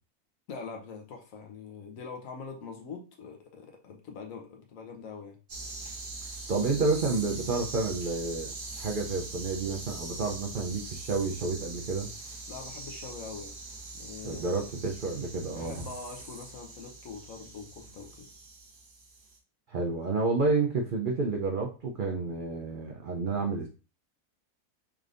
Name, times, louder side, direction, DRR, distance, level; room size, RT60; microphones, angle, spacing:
voice 1, 0.5-5.4 12.5-13.6 13.9-14.7 15.5-18.3, left 5 dB, 65° left, 2 dB, 1.1 m, -43 dB
sound 1, 5.5-19.4, right 3 dB, 45° right, 0.8 m, -42 dB
voice 2, 6.5-12.1 14.2-15.9 19.7-23.7, right 3 dB, 70° right, 1 dB, 0.5 m, -30 dB
3.8 x 3.4 x 2.5 m, 0.32 s
omnidirectional pair, 1.6 m